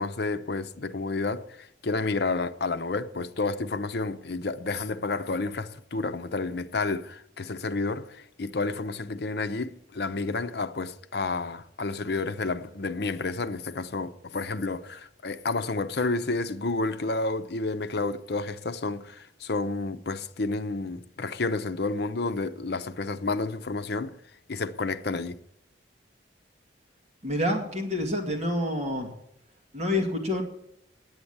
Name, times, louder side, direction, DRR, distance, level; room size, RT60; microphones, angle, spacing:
voice 1, 0.0-24.2 24.5-25.4, left 3 dB, 60° left, 0.7 m, -30 dB
voice 2, 27.2-29.1 29.7-30.4, left 1 dB, 40° right, 2.1 m, -27 dB
9.5 x 8.8 x 8.6 m
head